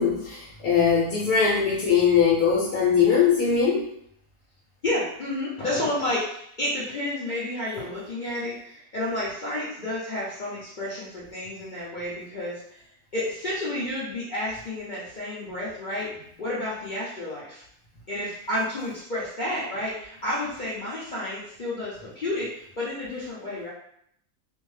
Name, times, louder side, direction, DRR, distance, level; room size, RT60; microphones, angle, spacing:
voice 1, 0.0-3.9, left 6 dB, 75° left, -6 dB, 1.1 m, -21 dB
voice 2, 4.8-12.8 13.1-16.1 16.4-17.6 18.1-23.7, left 1 dB, 60° left, -9 dB, 0.5 m, -31 dB
2.6 x 2.1 x 3.1 m, 0.70 s
omnidirectional pair, 1.6 m